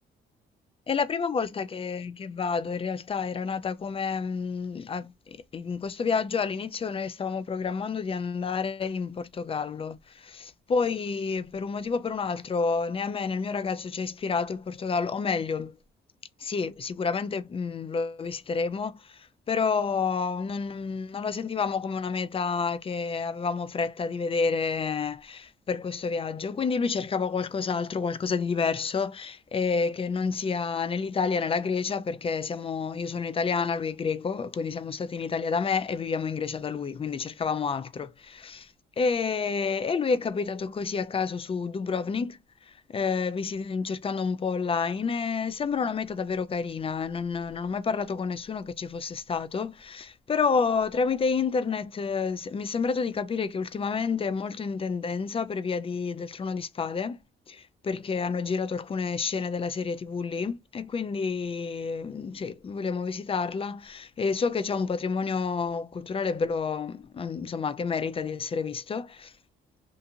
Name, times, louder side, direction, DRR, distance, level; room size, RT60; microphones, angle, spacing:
voice 1, 0.9-15.7 16.4-19.2 19.5-38.7 39.0-42.4 42.9-57.2 57.5-69.3, left 5 dB, 30° left, 0.4 m, -29 dB
2.5 x 2.5 x 2.7 m
cardioid pair, 90°, 20 cm